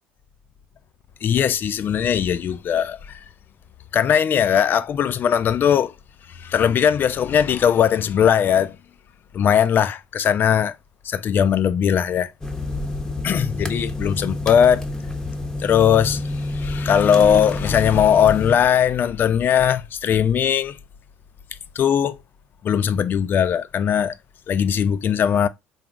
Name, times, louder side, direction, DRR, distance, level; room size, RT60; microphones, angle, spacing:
voice 1, 1.2-3.2 3.9-5.9 6.4-8.8 9.3-10.7 11.1-12.3 13.2-14.8 15.6-16.2 16.5-20.8 21.8-22.2 22.6-24.1 24.5-25.5, left 8 dB, 40° left, 0.3 m, -19 dB
sound 1, 12.4-18.6, left 2 dB, 10° left, 0.8 m, -28 dB
3.9 x 2.3 x 3.4 m
hypercardioid pair, 65°, 5 cm